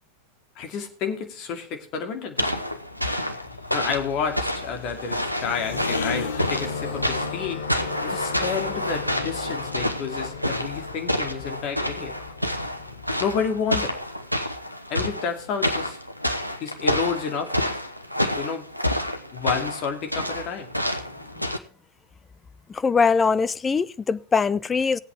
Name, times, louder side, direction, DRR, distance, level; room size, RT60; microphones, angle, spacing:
voice 1, 0.6-2.5 3.7-7.6 8.0-12.1 13.2-14.0 14.9-16.0 16.6-17.8 18.3-18.7 19.3-20.7, left 6 dB, 40° left, 2.4 m, -30 dB
sound 1, 2.4-21.6, left 1 dB, 90° right, 0.9 m, -29 dB
sound 2, 2.8-14.3, left 5 dB, 65° left, 1.6 m, -35 dB
voice 2, 22.7-25.0, left 5 dB, 15° left, 0.4 m, -22 dB
19.0 x 8.2 x 3.4 m
figure-of-eight pair, 90°, 0 cm